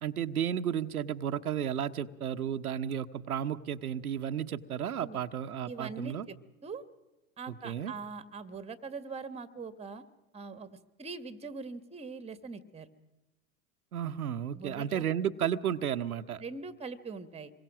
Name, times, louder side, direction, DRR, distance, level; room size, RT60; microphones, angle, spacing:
voice 1, 0.0-6.3 7.5-7.9 13.9-16.4, right 9 dB, 85° right, 8 dB, 0.9 m, -33 dB
voice 2, 5.6-6.4 6.6-6.8 7.4-10.0 10.3-12.9 14.5-15.0 16.4-17.5, right 4 dB, 15° right, 13 dB, 1.6 m, -42 dB
26.5 x 22.0 x 6.1 m, 1.1 s
hypercardioid pair, 90°, 43 cm